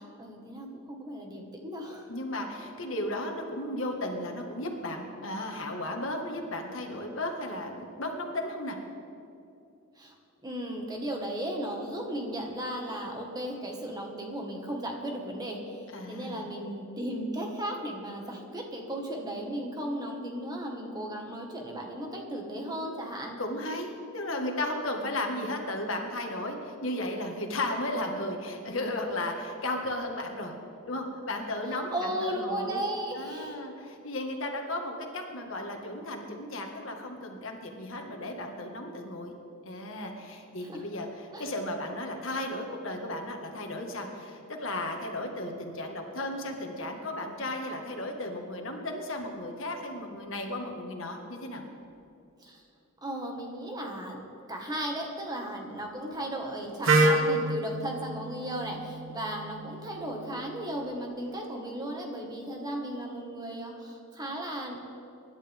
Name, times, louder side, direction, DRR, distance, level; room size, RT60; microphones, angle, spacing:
voice 1, 0.0-2.1 10.0-10.1 10.4-23.4 31.7-33.6 40.7-40.8 41.3-41.5 52.4-52.6 53.0-54.2 54.5-64.8, right 1 dB, 20° right, 1 dB, 1.7 m, -36 dB
voice 2, 2.1-8.8 15.9-16.5 23.4-30.5 30.9-32.8 33.1-39.3 39.6-51.6, left 1 dB, 70° left, 2 dB, 1.7 m, -35 dB
Wind instrument woodwind instrument, 56.8-60.7, right 2 dB, 70° right, 1.3 m, -28 dB
24.0 x 11.5 x 3.6 m, 2.7 s
head